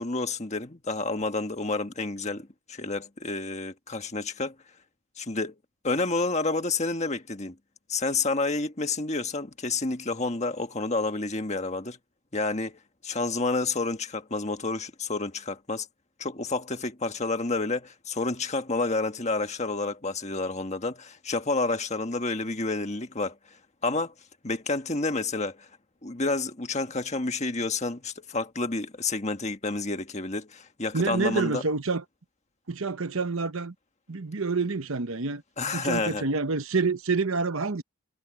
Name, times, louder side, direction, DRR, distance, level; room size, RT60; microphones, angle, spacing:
voice 1, 0.0-4.5 5.2-5.5 5.8-7.5 7.9-12.0 12.3-12.8 13.0-15.9 16.2-23.4 23.8-24.1 24.4-25.7 26.0-31.6 35.6-36.2, left 3 dB, 30° left, 1.6 m, -29 dB
voice 2, 30.9-32.0 32.7-33.7 34.1-35.4 35.7-37.8, right 4 dB, 65° right, 1.0 m, -27 dB
head